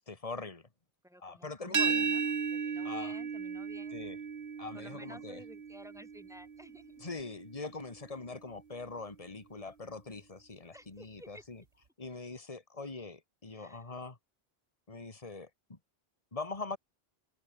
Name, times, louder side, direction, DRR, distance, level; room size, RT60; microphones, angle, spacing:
voice 1, 0.1-0.7 1.2-2.1 2.8-3.1 3.9-4.2 4.6-5.4 7.0-11.6 12.0-14.2 14.9-15.8 16.3-16.8, left 3 dB, 35° left, 2.1 m, -42 dB
voice 2, 1.0-4.1 4.7-7.1 10.7-11.4 13.5-13.9, equal, 5° right, 5.7 m, -53 dB
sound 1, 1.7-7.5, right 6 dB, 60° right, 1.4 m, -35 dB
omnidirectional pair, 1.1 m